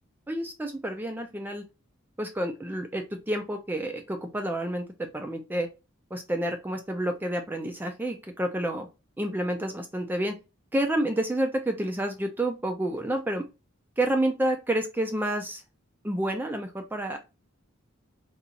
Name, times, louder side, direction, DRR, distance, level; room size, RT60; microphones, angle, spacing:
voice 1, 0.3-1.6 2.2-5.7 6.1-8.9 9.2-10.3 10.7-13.5 14.0-15.6 16.0-17.2, right 1 dB, 10° right, 4 dB, 0.3 m, -29 dB
3.8 x 2.3 x 2.8 m, 0.27 s
head